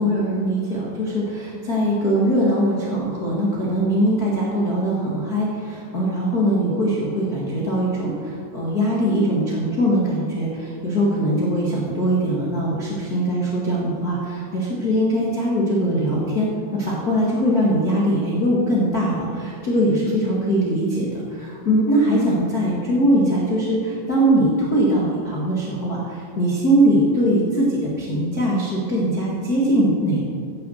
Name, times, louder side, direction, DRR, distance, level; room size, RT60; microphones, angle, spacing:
voice 1, 0.0-30.2, right 1 dB, 80° left, -6 dB, 0.8 m, -21 dB
15.5 x 7.0 x 6.4 m, 2.4 s
omnidirectional pair, 5.1 m